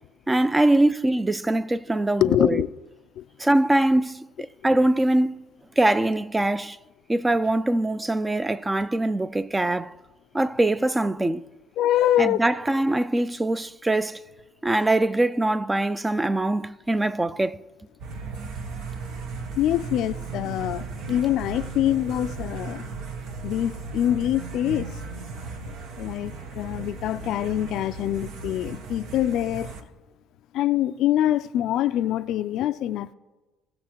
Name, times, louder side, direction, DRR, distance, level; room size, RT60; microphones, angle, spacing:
voice 1, 0.3-2.6 3.4-5.5 5.8-6.8 7.1-9.9 10.3-11.4 12.2-14.2 14.6-17.6, right 1 dB, 15° right, 0.4 m, -23 dB
voice 2, 2.2-2.7 3.2-3.3 11.8-12.4 19.6-22.8 23.4-24.9 26.0-29.7 30.5-33.1, left 12 dB, 70° left, 0.3 m, -24 dB
sound 1, 18.0-29.8, right 4 dB, 70° right, 0.9 m, -36 dB
18.0 x 6.4 x 2.9 m
supercardioid pair, 65°, 0 cm